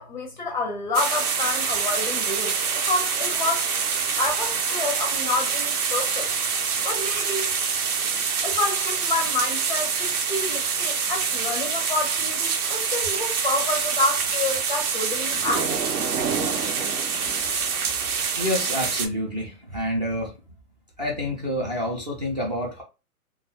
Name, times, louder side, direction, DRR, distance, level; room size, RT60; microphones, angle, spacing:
voice 1, 0.0-2.6 2.8-3.7 4.2-6.3 6.8-7.5 8.4-15.7, left 2 dB, 35° left, 0.4 m, -28 dB
sound 1, 0.9-19.1, right 6 dB, 65° right, 0.7 m, -26 dB
voice 2, 7.9-8.2 17.5-17.7 18.4-20.3 21.0-22.8, left 1 dB, 30° right, 0.4 m, -28 dB
2.3 x 2.2 x 2.9 m
hypercardioid pair, 150°, 47 cm